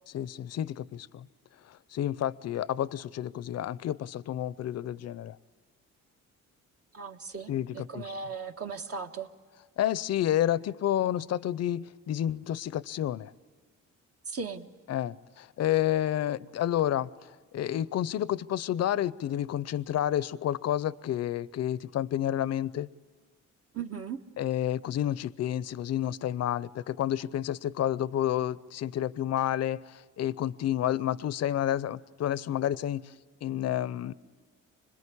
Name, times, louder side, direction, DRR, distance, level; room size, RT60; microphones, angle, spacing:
voice 1, 0.1-1.3 1.6-5.4 7.5-8.1 9.8-13.3 14.9-22.9 24.4-33.1 33.4-34.1, left 11 dB, 55° left, 19 dB, 0.6 m, -30 dB
voice 2, 6.9-7.5 7.9-9.3 14.3-14.7 23.7-24.2, right 5 dB, 50° right, 5 dB, 1.7 m, -37 dB
26.0 x 21.0 x 8.5 m, 1.5 s
cardioid pair, 90°, 30 cm